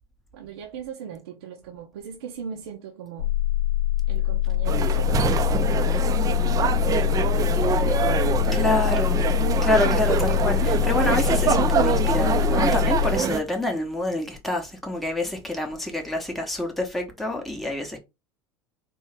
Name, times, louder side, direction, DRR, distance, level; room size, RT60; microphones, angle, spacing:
voice 1, 0.3-3.3 4.1-7.9, right 8 dB, 65° right, 0.7 m, -39 dB
sound 1, 3.2-13.2, left 13 dB, 75° left, 0.5 m, -24 dB
sound 2, 4.7-13.4, right 7 dB, 25° right, 0.5 m, -25 dB
voice 2, 8.5-9.2 9.6-18.0, left 1 dB, ahead, 0.8 m, -27 dB
4.5 x 2.7 x 3.2 m
figure-of-eight pair, 75°, 14 cm